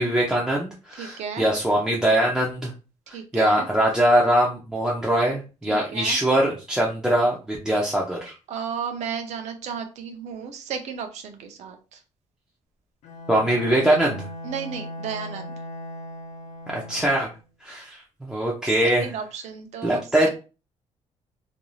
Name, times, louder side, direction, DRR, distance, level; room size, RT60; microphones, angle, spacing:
voice 1, 0.0-2.7 3.3-8.3 13.3-14.2 16.7-17.3 17.6-19.1 19.8-20.3, right 1 dB, 5° right, -3 dB, 0.4 m, -22 dB
voice 2, 0.9-1.5 3.1-3.7 5.7-6.2 8.5-12.0 14.4-15.5 18.8-20.3, right 7 dB, 70° right, 5 dB, 0.6 m, -34 dB
Bowed string instrument, 13.0-17.4, equal, 75° left, 0.6 m, -38 dB
2.5 x 2.3 x 3.0 m, 0.32 s
cardioid pair, 175°, 12 cm